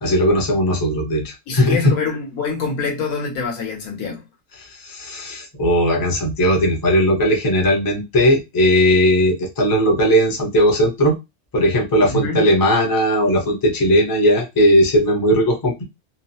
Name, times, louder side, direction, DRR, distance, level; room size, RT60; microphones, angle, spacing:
voice 1, 0.0-1.8 4.6-11.2 11.5-15.8, equal, 25° left, 0.4 m, -17 dB
voice 2, 1.5-4.2 12.1-12.5, left 4 dB, 80° left, 1.4 m, -25 dB
2.9 x 2.1 x 2.7 m
omnidirectional pair, 1.6 m